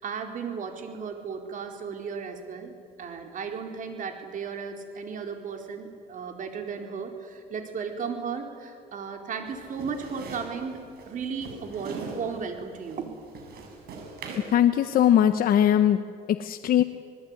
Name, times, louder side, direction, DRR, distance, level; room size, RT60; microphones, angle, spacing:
voice 1, 0.0-2.7 3.0-10.8 11.1-13.2, right 6 dB, 50° right, 4 dB, 4.4 m, -35 dB
sound 1, 9.5-14.5, right 4 dB, 65° right, 7.3 m, -41 dB
voice 2, 14.5-16.8, left 10 dB, 60° left, 8 dB, 1.0 m, -21 dB
27.5 x 20.0 x 9.8 m, 2.3 s
cardioid pair, 110°, 17 cm